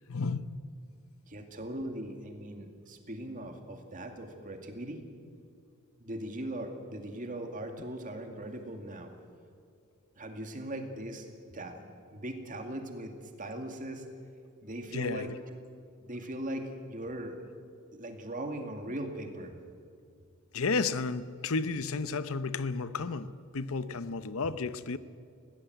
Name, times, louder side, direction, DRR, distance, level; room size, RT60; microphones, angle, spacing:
voice 1, 0.1-0.6 14.9-15.3 20.5-25.0, left 4 dB, 70° left, 0.8 m, -32 dB
voice 2, 1.3-5.0 6.0-9.1 10.2-11.3 11.5-14.0 14.5-15.6 16.0-17.4 17.9-19.6, right 1 dB, 35° right, 2.3 m, -39 dB
21.0 x 17.5 x 8.0 m
head